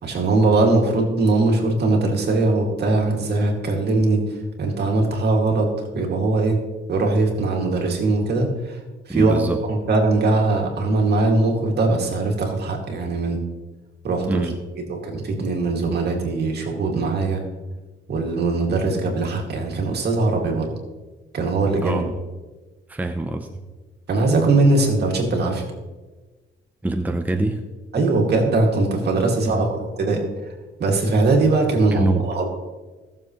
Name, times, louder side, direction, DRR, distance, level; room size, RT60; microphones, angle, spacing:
voice 1, 0.0-4.2 4.6-6.6 6.9-8.8 9.1-9.4 9.7-13.4 14.0-14.4 14.9-17.4 18.1-20.7 21.3-22.0 24.1-25.6 27.9-30.2 30.8-32.4, right 3 dB, 55° right, 1 dB, 2.5 m, -20 dB
voice 2, 9.1-9.6 14.3-14.6 21.8-22.2 22.9-23.5 26.8-27.6 29.5-29.7 31.9-32.2, right 2 dB, 10° right, 5 dB, 0.7 m, -24 dB
16.5 x 7.2 x 3.2 m, 1.2 s
cardioid pair, 90°, 20 cm